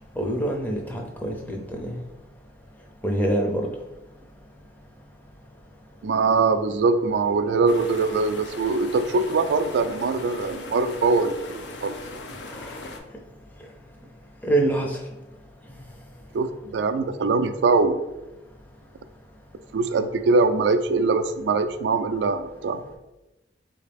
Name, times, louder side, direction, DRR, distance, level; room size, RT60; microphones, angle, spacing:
voice 1, 0.2-2.0 3.0-3.7 12.6-12.8 14.4-15.0, right 1 dB, 10° left, 0 dB, 0.5 m, -25 dB
voice 2, 6.0-11.9 16.3-18.0 19.7-23.0, right 3 dB, 75° right, 10 dB, 0.3 m, -22 dB
sound 1, 7.7-13.0, left 2 dB, 75° left, 0.5 m, -39 dB
4.3 x 2.8 x 3.4 m, 1.0 s
head